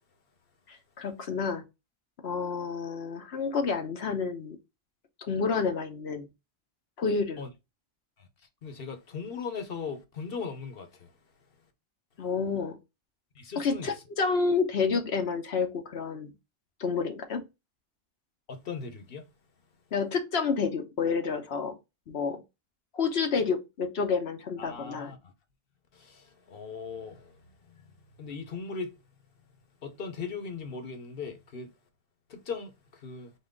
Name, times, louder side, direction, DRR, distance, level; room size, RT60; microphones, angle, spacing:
voice 1, 0.7-1.6 2.2-4.6 5.2-6.3 7.0-7.4 12.2-12.8 13.6-16.3 16.8-17.4 19.9-21.7 22.1-22.4 22.9-25.1, left 5 dB, 80° left, 1.2 m, -29 dB
voice 2, 8.6-11.1 13.3-14.0 18.5-19.3 24.6-25.3 25.9-29.0 29.8-31.7 32.3-33.3, left 5 dB, 65° left, 1.1 m, -39 dB
4.1 x 3.0 x 3.7 m
omnidirectional pair, 1.1 m